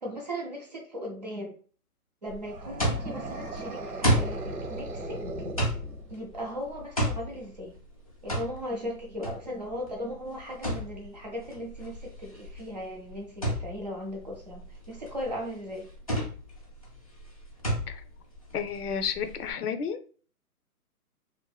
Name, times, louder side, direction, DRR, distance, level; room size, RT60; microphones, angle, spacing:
voice 1, 0.0-1.6 2.2-5.2 6.1-7.8 8.2-15.9, equal, 30° right, -1 dB, 0.5 m, -37 dB
sound 1, 2.3-19.5, equal, 25° left, 0.4 m, -33 dB
sound 2, 2.4-6.3, right 2 dB, 80° right, 1.0 m, -37 dB
voice 2, 18.5-20.0, left 7 dB, 80° left, 9 dB, 0.6 m, -31 dB
2.7 x 2.5 x 2.2 m, 0.42 s
hypercardioid pair, 145°, 45 cm